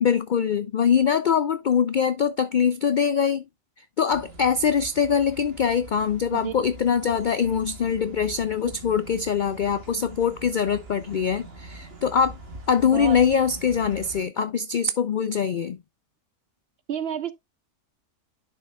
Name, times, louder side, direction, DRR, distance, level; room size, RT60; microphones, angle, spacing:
voice 1, 0.0-3.4 4.0-12.4 12.7-15.8, left 7 dB, 85° left, 0.4 m, -23 dB
sound 1, 4.1-14.2, right 2 dB, 45° right, 1.8 m, -43 dB
voice 2, 6.3-6.7 12.9-13.2 16.9-17.3, right 9 dB, 65° right, 0.6 m, -30 dB
11.0 x 6.1 x 2.3 m
omnidirectional pair, 1.4 m